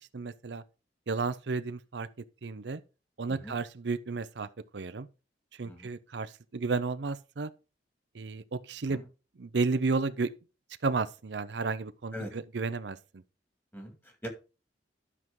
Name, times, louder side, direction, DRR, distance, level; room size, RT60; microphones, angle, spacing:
voice 1, 0.1-0.6 1.1-2.1 2.4-2.8 3.2-5.1 5.6-7.5 8.1-9.0 9.4-10.3 10.8-13.0, right 4 dB, 70° right, 0.6 m, -32 dB
voice 2, 13.7-14.3, equal, 10° left, 2.2 m, -41 dB
12.5 x 6.0 x 3.8 m
head